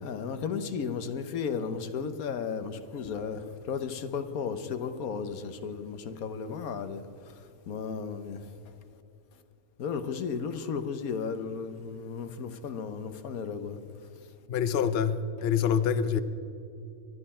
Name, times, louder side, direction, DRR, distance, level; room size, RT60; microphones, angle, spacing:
voice 1, 0.0-7.0 7.7-8.4 9.8-13.8, left 6 dB, 85° left, 1.4 m, -34 dB
voice 2, 14.5-16.2, left 7 dB, 55° left, 0.8 m, -26 dB
24.0 x 11.5 x 4.3 m
omnidirectional pair, 1.5 m